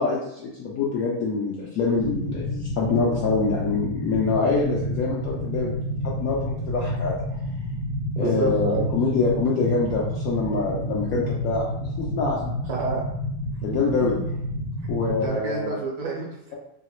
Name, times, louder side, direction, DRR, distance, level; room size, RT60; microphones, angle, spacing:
voice 1, 0.0-7.2 8.2-11.7 12.0-12.6 13.6-14.1 14.9-15.8, left 4 dB, 75° left, -4 dB, 0.8 m, -25 dB
sound 1, 1.9-15.3, equal, 45° left, 0.5 m, -29 dB
voice 2, 8.2-8.9 12.7-13.1 15.2-16.6, right 4 dB, 65° right, -1 dB, 1.1 m, -29 dB
3.1 x 2.8 x 3.0 m, 0.80 s
omnidirectional pair, 2.0 m